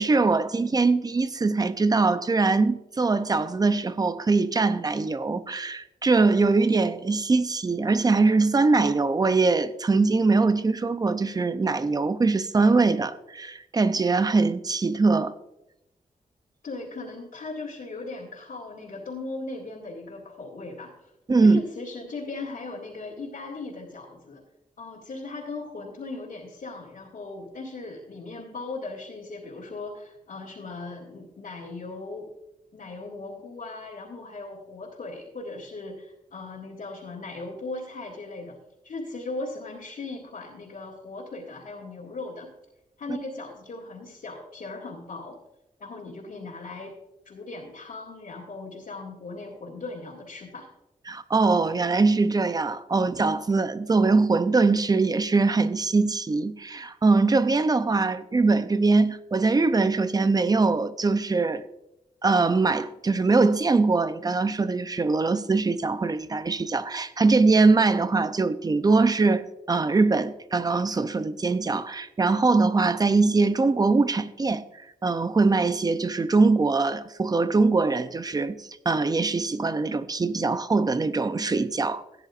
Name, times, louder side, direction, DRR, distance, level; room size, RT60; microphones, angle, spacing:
voice 1, 0.0-15.3 21.3-21.6 51.1-61.6 62.2-74.6 75.0-82.0, right 3 dB, 25° right, 0.6 m, -22 dB
voice 2, 16.6-21.1 21.4-24.4 24.8-32.3 32.7-38.6 38.8-42.5 43.0-45.4 45.8-47.0 47.2-50.7, left 3 dB, 65° left, 2.2 m, -38 dB
16.0 x 9.9 x 2.5 m
wide cardioid pair, 115°, 15 cm